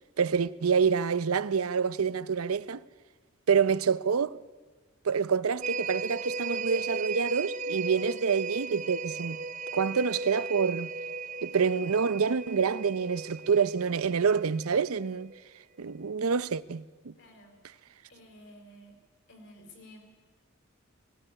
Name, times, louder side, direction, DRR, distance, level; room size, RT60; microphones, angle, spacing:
voice 1, 0.2-2.8 3.5-4.4 5.0-9.4 9.7-10.9 11.4-15.3 15.8-16.8, right 6 dB, 90° right, 0.6 m, -27 dB
sound 1, 5.6-15.4 15.8-15.9, right 4 dB, 35° right, 0.6 m, -36 dB
voice 2, 17.1-17.6 18.1-19.0 19.3-20.0, equal, 55° left, 4.8 m, -52 dB
19.5 x 16.5 x 10.0 m
head